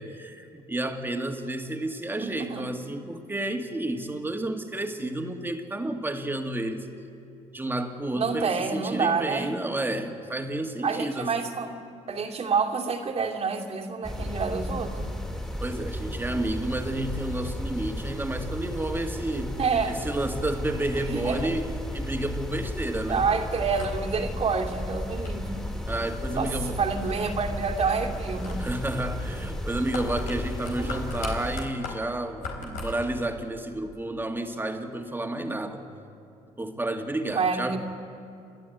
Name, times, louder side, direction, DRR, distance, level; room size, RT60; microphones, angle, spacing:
voice 1, 0.0-6.9 7.5-11.3 15.6-19.6 19.9-23.3 25.9-26.8 28.6-35.8 36.6-37.8, right 1 dB, 15° right, 5 dB, 2.2 m, -31 dB
voice 2, 2.2-2.7 8.1-9.5 10.8-11.7 12.1-15.1 19.6-20.0 20.9-21.5 23.1-25.6 26.3-28.6 30.8-31.0 37.3-37.8, right 5 dB, 45° right, 2 dB, 2.5 m, -28 dB
sound 1, 14.0-31.6, left 1 dB, 5° left, 2.9 m, -34 dB
sound 2, 21.1-33.3, left 3 dB, 85° left, 4.0 m, -42 dB
29.5 x 11.5 x 9.3 m, 2.6 s
supercardioid pair, 70°, 14 cm